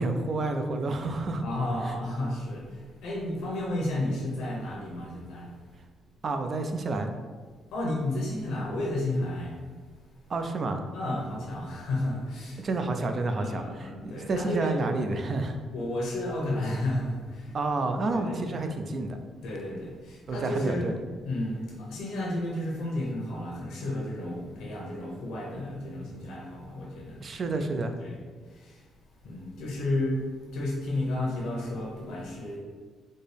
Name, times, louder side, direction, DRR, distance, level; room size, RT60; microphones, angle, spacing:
voice 1, 0.0-1.5 1.9-2.0 6.2-7.1 10.3-10.8 12.6-15.6 17.5-19.2 20.3-20.9 27.2-27.9, right 2 dB, 45° right, 6 dB, 0.4 m, -29 dB
voice 2, 1.4-5.6 7.7-9.6 10.9-12.7 13.4-14.8 15.7-17.6 17.8-18.7 19.4-20.9 21.3-27.7 28.0-28.9 29.2-32.6, left 1 dB, 85° left, -2 dB, 0.9 m, -32 dB
4.2 x 2.0 x 3.3 m, 1.5 s
cardioid pair, 90°, 0 cm